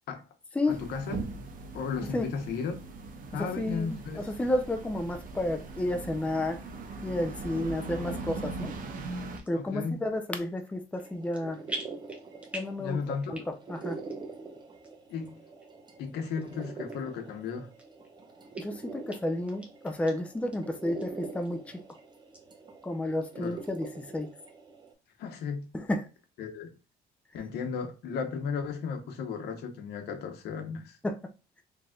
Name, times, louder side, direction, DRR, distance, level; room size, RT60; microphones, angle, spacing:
voice 1, 0.7-1.2 1.7-2.7 3.3-4.2 9.5-10.0 12.8-13.4 15.1-15.4 16.0-17.7 23.4-23.5 25.2-25.7 26.4-26.7 27.3-31.0, left 5 dB, 75° left, 1.0 m, -34 dB
sound 1, 0.7-9.4, right 3 dB, 55° right, 0.9 m, -40 dB
voice 2, 3.3-6.6 7.0-8.7 9.5-11.6 12.5-13.0 13.3-14.0 18.6-21.8 22.8-24.3 25.7-26.1 31.0-31.3, left 1 dB, 10° left, 0.5 m, -31 dB
sound 2, 9.3-9.5 10.2-10.6 10.9-11.4 11.7-12.8 13.2-13.7 14.1-14.2 14.8-14.9 15.6-15.7 16.4-16.5 16.9-17.0 17.5-18.1 18.5-18.6 19.1-19.2 19.5-20.1 20.5-20.6 21.0-21.1 21.4-21.9 22.3-22.4, right 1 dB, 5° right, 1.2 m, -42 dB
sound 3, 11.0-24.9, right 4 dB, 25° right, 0.8 m, -45 dB
4.0 x 3.3 x 2.3 m
cardioid pair, 110°, 17 cm